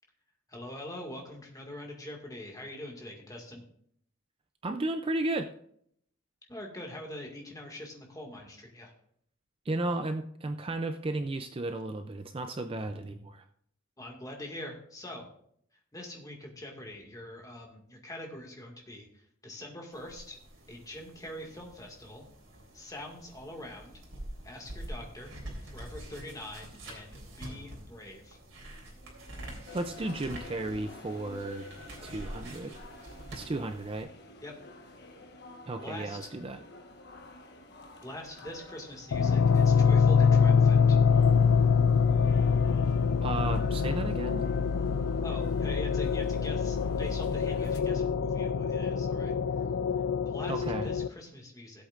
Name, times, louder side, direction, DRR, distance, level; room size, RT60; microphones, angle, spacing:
voice 1, 0.5-3.6 6.5-8.9 14.0-15.3 15.9-20.4 20.7-22.3 22.7-24.0 24.4-28.4 34.4-34.5 35.8-36.3 38.0-41.0 45.2-49.7 50.3-51.9, left 1 dB, 15° left, 1 dB, 2.0 m, -44 dB
voice 2, 4.6-5.5 9.7-13.4 29.3-31.7 32.0-32.8 33.3-34.1 35.7-36.6 43.2-44.5 50.5-50.9, right 2 dB, 25° right, 7 dB, 0.4 m, -34 dB
sound 1, 19.9-34.0, right 1 dB, 65° right, 3.6 m, -46 dB
sound 2, 29.6-47.8, left 2 dB, 55° left, 1.3 m, -50 dB
sound 3, 39.1-51.1, left 6 dB, 75° left, 0.4 m, -25 dB
17.5 x 8.0 x 2.5 m, 0.67 s
head